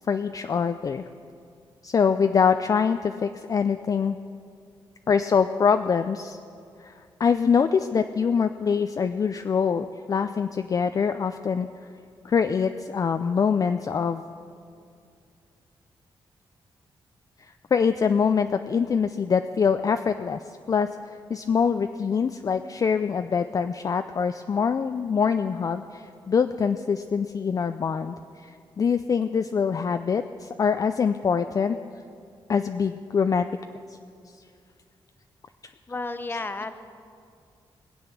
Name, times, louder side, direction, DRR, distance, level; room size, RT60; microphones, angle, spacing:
voice 1, 0.1-1.0 1.8-4.2 5.1-6.4 6.8-6.9 7.2-11.7 12.2-14.2 17.7-20.4 20.7-20.9 21.3-31.8 32.5-33.5 36.3-36.4, left 6 dB, 40° left, 8 dB, 0.4 m, -24 dB
voice 2, 35.9-36.7, left 3 dB, 20° left, 10 dB, 0.8 m, -32 dB
20.5 x 7.9 x 7.2 m, 2.4 s
cardioid pair, 110°, 9 cm